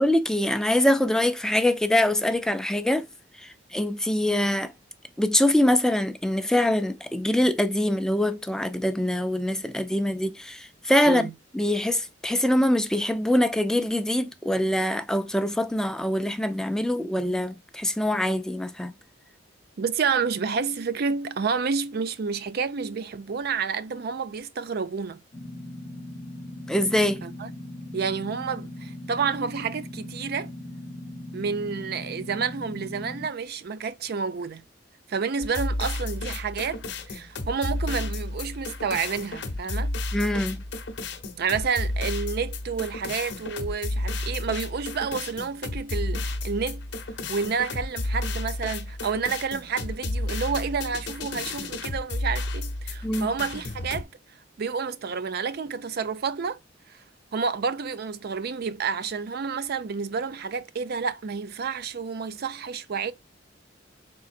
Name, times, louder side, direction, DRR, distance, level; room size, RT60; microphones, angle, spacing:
voice 1, 0.0-3.1 3.4-4.7 5.2-11.2 11.5-18.9 26.7-27.2 40.1-40.6 53.0-53.3, left 1 dB, 5° left, 0.4 m, -24 dB
voice 2, 19.8-25.2 27.2-27.5 27.9-30.5 31.3-34.6 35.1-40.0 41.4-46.9 47.3-56.6 56.9-57.0 57.3-63.1, right 5 dB, 60° right, 0.4 m, -29 dB
sound 1, 25.3-33.3, left 1 dB, 30° left, 0.9 m, -39 dB
sound 2, 35.4-54.0, left 2 dB, 70° left, 0.8 m, -32 dB
4.2 x 3.8 x 2.4 m
head